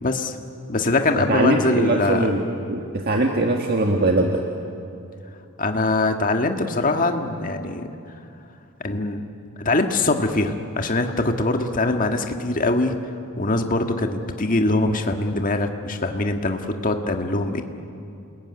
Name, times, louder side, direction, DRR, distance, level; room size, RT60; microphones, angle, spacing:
voice 1, 0.0-0.4 0.7-2.3 5.6-7.9 8.8-9.3 9.6-12.9 13.4-17.6, left 2 dB, 40° left, 5 dB, 1.7 m, -22 dB
voice 2, 1.3-2.4 2.7-4.4, right 2 dB, 45° right, 2 dB, 1.7 m, -21 dB
29.0 x 20.5 x 9.7 m, 2.6 s
head